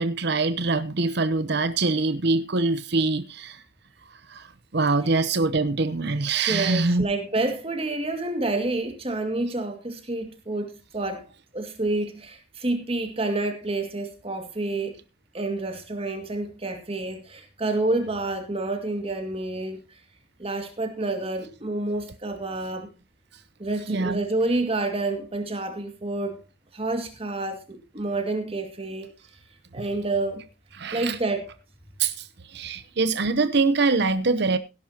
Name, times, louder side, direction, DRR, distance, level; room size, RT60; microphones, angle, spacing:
voice 1, 0.0-3.6 4.3-4.5 4.7-7.0 23.9-24.2 30.8-31.2 32.0-32.2 32.5-34.6, right 3 dB, 65° right, 0.9 m, -24 dB
voice 2, 6.5-11.2 11.5-14.9 15.3-19.8 20.4-22.9 23.6-26.4 26.7-29.1 29.7-30.4 30.9-31.5, right 2 dB, 30° right, 2.3 m, -28 dB
17.0 x 11.0 x 2.9 m
head